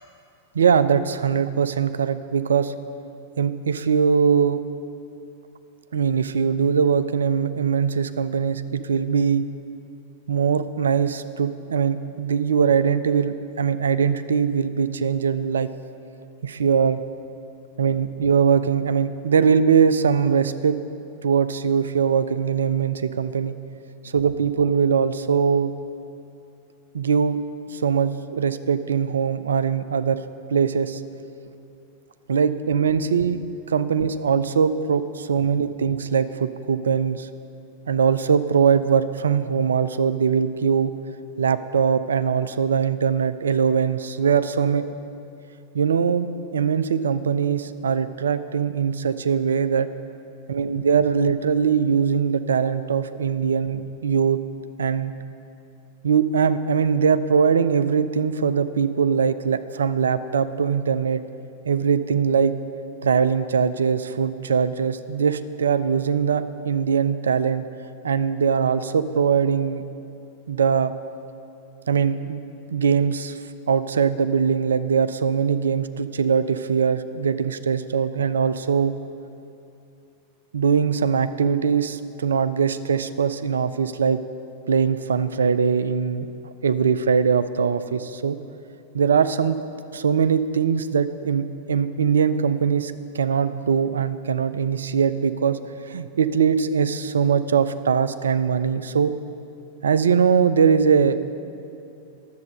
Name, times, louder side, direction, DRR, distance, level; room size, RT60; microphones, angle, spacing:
voice 1, 0.5-2.7 3.4-4.6 5.9-9.5 10.3-15.7 16.4-17.0 17.8-20.8 21.2-23.6 24.0-25.7 26.9-27.4 27.7-30.2 30.5-31.0 32.3-33.4 33.7-37.3 37.9-40.9 41.4-44.9 45.7-49.9 50.5-54.4 54.8-55.1 56.0-61.2 61.7-62.5 63.0-67.7 68.0-69.8 70.5-70.9 71.9-72.4 72.7-73.4 73.7-78.9 80.5-84.2 84.7-86.3 86.6-88.4 88.9-89.6 89.9-95.6 95.9-99.1 99.8-101.2, right 6 dB, 70° right, 12 dB, 0.4 m, -21 dB
10.5 x 7.5 x 6.5 m, 2.6 s
figure-of-eight pair, 90°, 0 cm